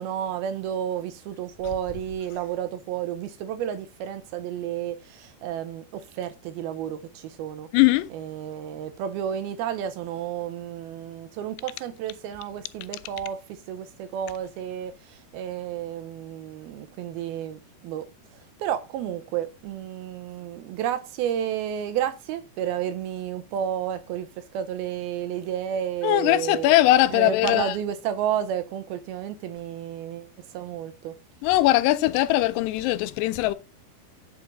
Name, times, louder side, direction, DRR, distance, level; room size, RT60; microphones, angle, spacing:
voice 1, 0.0-7.7 8.1-26.7 27.1-31.1, right 9 dB, 75° right, 2.4 m, -31 dB
voice 2, 7.7-8.1 26.0-27.7 31.4-33.5, left 16 dB, 85° left, 2.6 m, -20 dB
9.8 x 5.9 x 3.8 m
omnidirectional pair, 4.8 m